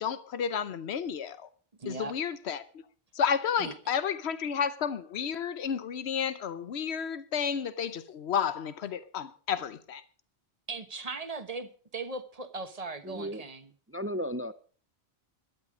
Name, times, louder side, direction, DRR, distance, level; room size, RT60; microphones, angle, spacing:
voice 1, 0.0-1.5 1.9-2.6 3.1-10.0, left 7 dB, 90° left, 1.1 m, -31 dB
voice 2, 1.8-2.2 3.6-3.7 10.7-13.7, right 3 dB, 35° right, 1.3 m, -38 dB
voice 3, 13.0-13.4 13.9-14.5, equal, 15° right, 0.5 m, -34 dB
12.5 x 12.5 x 5.1 m
omnidirectional pair, 1.1 m